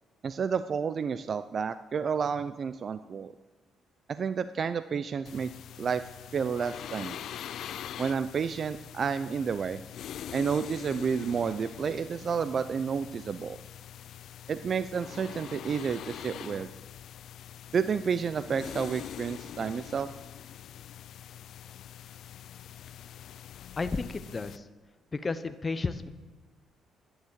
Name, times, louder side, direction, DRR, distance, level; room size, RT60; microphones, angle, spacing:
voice 1, 0.2-3.3 4.1-5.5 5.8-6.0 6.3-7.2 8.0-9.8 10.3-13.6 14.5-16.7 17.7-20.1, right 6 dB, 45° right, 13 dB, 0.5 m, -30 dB
sound 1, 5.3-24.6, left 10 dB, 70° left, 0.4 m, -44 dB
voice 2, 23.8-24.7 25.1-26.1, left 3 dB, 30° left, 10 dB, 0.8 m, -32 dB
11.5 x 10.0 x 7.3 m, 1.2 s
cardioid pair, 90°, 0 cm